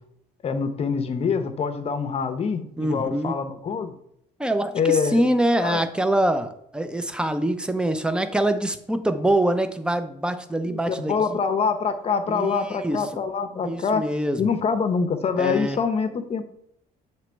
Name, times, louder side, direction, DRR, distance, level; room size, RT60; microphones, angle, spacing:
voice 1, 0.4-3.9 4.7-5.3 5.6-5.8 10.7-14.1 14.4-16.4, left 5 dB, 35° left, 8 dB, 0.7 m, -25 dB
voice 2, 2.8-3.4 4.4-11.4 12.3-13.1 13.6-14.5 15.4-15.8, right 1 dB, 5° right, 9 dB, 0.5 m, -24 dB
7.2 x 3.1 x 4.5 m, 0.73 s
cardioid pair, 110°, 17 cm